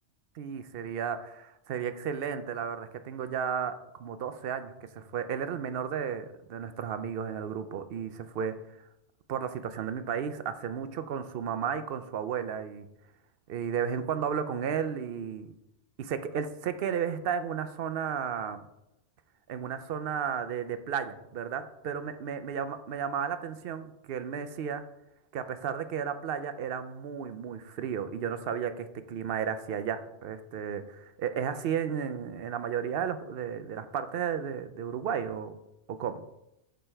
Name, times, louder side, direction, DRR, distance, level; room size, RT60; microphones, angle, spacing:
voice 1, 0.4-8.6 9.3-12.9 13.5-15.5 16.0-18.6 19.5-24.8 25.3-35.5 35.9-36.2, right 7 dB, 60° right, 11 dB, 0.7 m, -33 dB
6.7 x 5.2 x 4.4 m, 0.85 s
omnidirectional pair, 1.3 m